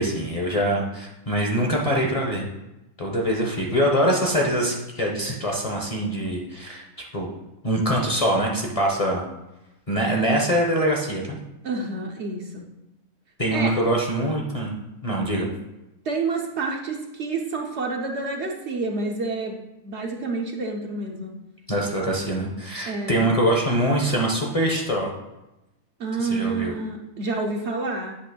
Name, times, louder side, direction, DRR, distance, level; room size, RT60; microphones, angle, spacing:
voice 1, 0.0-2.5 3.0-6.8 7.1-7.3 7.6-9.2 9.9-11.4 13.4-14.7 15.0-15.5 21.7-25.1 26.2-26.7, right 1 dB, 30° left, -2 dB, 0.8 m, -23 dB
voice 2, 11.6-12.6 13.5-13.8 16.0-21.3 22.9-23.3 26.0-28.2, right 3 dB, 55° right, 1 dB, 0.9 m, -29 dB
8.5 x 3.1 x 6.1 m, 0.96 s
omnidirectional pair, 1.5 m